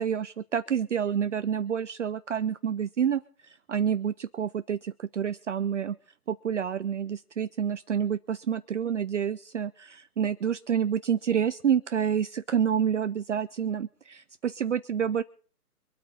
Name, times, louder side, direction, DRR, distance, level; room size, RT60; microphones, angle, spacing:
voice 1, 0.0-6.0 6.3-15.2, right 8 dB, 50° right, 13 dB, 0.6 m, -28 dB
24.5 x 8.5 x 5.2 m, 0.42 s
hypercardioid pair, 155°, 46 cm